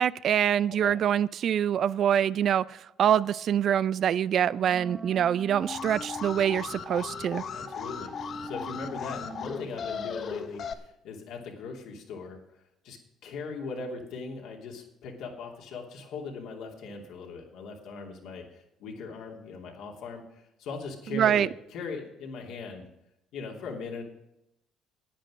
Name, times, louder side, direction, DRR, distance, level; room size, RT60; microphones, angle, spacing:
voice 1, 0.0-7.4 21.1-21.5, right 9 dB, 60° right, 0.4 m, -25 dB
Wind instrument woodwind instrument, 4.3-10.3, right 2 dB, 10° right, 1.1 m, -44 dB
Alarm, 5.6-10.7, left 7 dB, 55° left, 1.1 m, -37 dB
voice 2, 7.5-12.4 12.8-22.9 23.3-24.0, left 4 dB, 75° left, 2.9 m, -40 dB
10.0 x 9.2 x 7.5 m
supercardioid pair, 75°, 0 cm